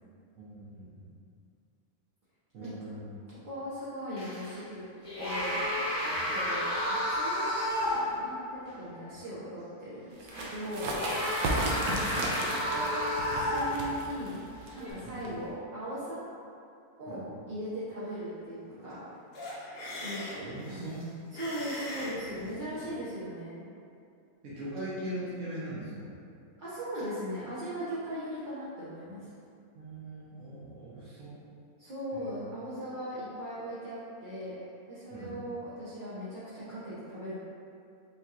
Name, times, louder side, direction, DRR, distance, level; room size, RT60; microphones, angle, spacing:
voice 1, 0.4-1.1 2.5-3.1 6.1-6.2 15.0-15.2 17.1-17.3 20.4-21.0 24.4-26.2 29.7-31.3 32.1-32.4 35.1-35.3, right 1 dB, 65° right, -10 dB, 1.2 m, -41 dB
voice 2, 2.6-3.0 3.4-4.8 5.2-5.6 6.0-10.9 11.8-12.3 12.7-14.4 14.8-16.2 17.0-19.1 19.4-19.5 20.0-23.6 26.6-29.3 31.8-34.6 34.9-37.3, equal, 45° right, -11 dB, 0.7 m, -39 dB
sound 1, 4.2-4.6 5.0-8.3 8.7-8.8 10.3-14.0 14.7-14.9, left 1 dB, 25° left, 0.8 m, -31 dB
sound 2, 10.2-15.5, right 2 dB, 80° right, 1.1 m, -35 dB
sound 3, 19.3-22.9, left 1 dB, 85° left, 1.5 m, -41 dB
5.8 x 2.8 x 2.4 m, 2.4 s
omnidirectional pair, 1.6 m